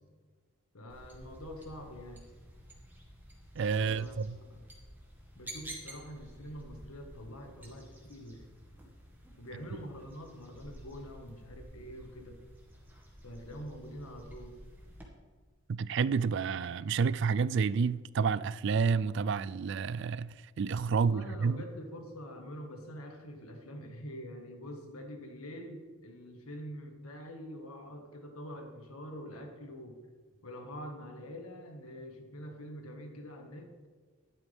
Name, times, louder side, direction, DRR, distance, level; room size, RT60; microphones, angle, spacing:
voice 1, 0.7-2.3 3.7-4.2 4.5-4.6 5.3-8.5 9.4-12.4 13.2-14.5 21.0-30.0 30.4-33.7, equal, 85° left, 1.8 m, -45 dB
sound 1, 0.9-15.1, right 1 dB, 10° right, 1.8 m, -51 dB
voice 2, 3.6-4.4 15.7-21.6, right 5 dB, 55° right, 0.3 m, -30 dB
13.5 x 11.5 x 3.6 m
head